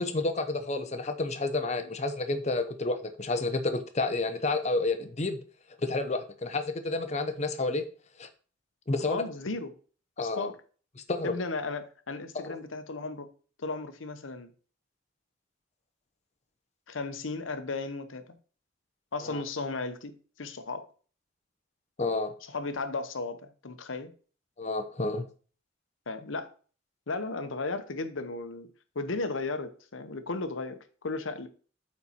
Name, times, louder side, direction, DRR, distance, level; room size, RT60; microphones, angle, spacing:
voice 1, 0.0-5.4 5.8-7.8 8.2-8.3 8.9-9.2 10.2-10.5 11.1-11.3 12.3-12.6 19.3-19.4 22.0-22.3 24.6-25.2, left 2 dB, 35° left, 0.8 m, -30 dB
voice 2, 9.1-9.8 10.2-10.6 11.2-13.3 13.6-14.5 16.9-18.2 19.1-20.9 22.5-24.1 26.1-26.5 27.1-31.5, left 3 dB, 90° left, 0.9 m, -35 dB
8.3 x 4.3 x 4.4 m
head